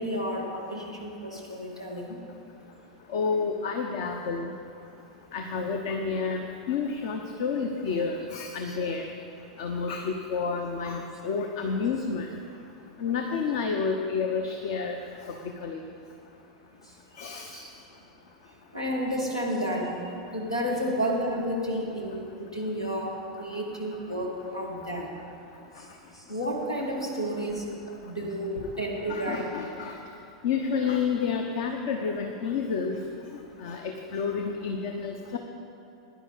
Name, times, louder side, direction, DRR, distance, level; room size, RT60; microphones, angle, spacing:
voice 1, 0.0-2.2 8.7-8.8 17.5-17.7 18.7-20.0 20.3-25.1 26.3-29.6, equal, 85° left, -1 dB, 1.8 m, -31 dB
voice 2, 3.1-4.5 5.3-9.1 9.6-12.3 13.0-15.0 15.6-15.8 17.2-17.5 29.1-30.0 30.4-33.0 33.6-35.4, left 5 dB, 55° left, 4 dB, 0.8 m, -29 dB
16.0 x 10.5 x 4.0 m, 2.9 s
figure-of-eight pair, 90°, 3 cm